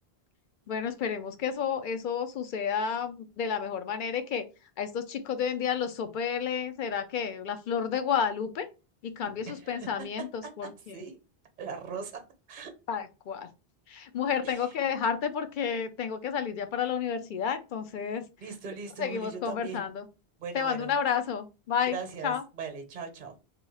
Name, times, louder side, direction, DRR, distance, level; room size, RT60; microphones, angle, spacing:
voice 1, 0.7-4.5 4.8-8.7 9.0-11.0 12.9-13.5 13.9-18.2 19.0-20.1 20.5-22.0 22.2-22.4, left 7 dB, 60° left, 0.6 m, -31 dB
voice 2, 9.4-11.2 11.6-12.2 12.5-12.7 14.4-14.7 18.4-19.9 20.4-20.9 21.9-23.3, right 5 dB, 50° right, 0.8 m, -40 dB
2.9 x 2.3 x 3.9 m
omnidirectional pair, 1.0 m